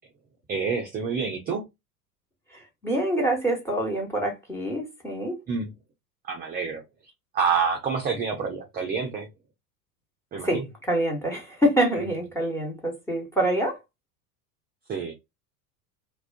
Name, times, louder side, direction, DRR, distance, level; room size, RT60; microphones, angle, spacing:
voice 1, 0.5-1.6 5.5-5.7 6.2-6.8 7.3-9.3 10.3-10.6 11.9-12.1 14.9-15.1, right 5 dB, 20° right, 0.5 m, -27 dB
voice 2, 2.8-5.4 10.4-13.8, right 1 dB, 5° left, 1.1 m, -26 dB
2.4 x 2.3 x 2.4 m
hypercardioid pair, 85°, 48 cm